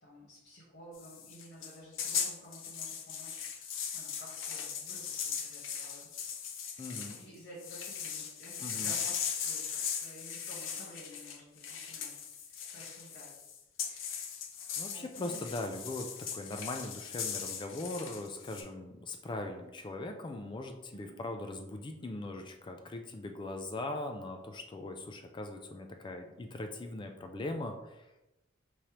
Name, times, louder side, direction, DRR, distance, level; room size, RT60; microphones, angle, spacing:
voice 1, 0.0-6.1 7.2-12.1 12.5-13.4 14.8-15.4 20.9-21.2, equal, 55° left, -8 dB, 1.1 m, -52 dB
sound 1, 0.9-7.2 7.6-18.6, left 7 dB, 75° left, 0.6 m, -39 dB
voice 2, 6.8-7.2 8.6-8.9 14.8-28.3, left 2 dB, 25° left, 5 dB, 0.3 m, -40 dB
5.1 x 3.2 x 2.9 m, 0.99 s
head